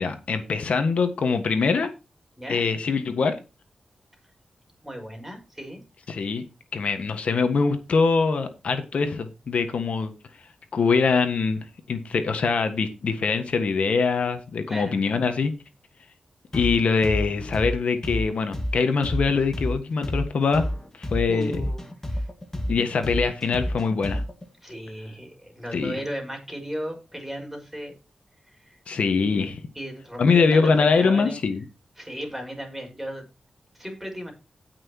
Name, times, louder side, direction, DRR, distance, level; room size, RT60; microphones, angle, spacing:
voice 1, 0.0-1.9 2.5-3.4 6.1-6.4 6.7-10.1 10.7-15.5 16.5-20.7 21.0-21.7 22.7-24.2 25.7-25.9 28.9-29.6 30.2-31.6, left 4 dB, 80° left, 1.6 m, -23 dB
voice 2, 4.8-5.8 14.7-15.0 21.3-22.3 24.6-27.9 28.5-28.8 29.8-31.4 32.0-33.3 33.7-34.3, equal, 5° right, 5.4 m, -36 dB
sound 1, 16.5-24.5, equal, 20° left, 2.0 m, -29 dB
17.5 x 6.2 x 3.0 m
wide cardioid pair, 85°, 2 cm